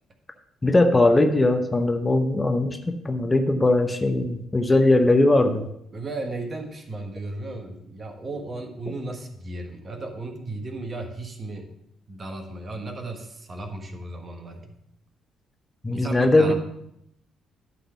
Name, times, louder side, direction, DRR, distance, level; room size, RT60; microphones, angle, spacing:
voice 1, 0.6-5.7 15.8-16.5, left 2 dB, 20° left, 6 dB, 0.8 m, -20 dB
voice 2, 5.9-11.7 12.1-14.8 15.9-16.5, right 2 dB, 40° right, 5 dB, 1.3 m, -35 dB
11.5 x 3.9 x 5.8 m, 0.78 s
figure-of-eight pair, 45°, 0 cm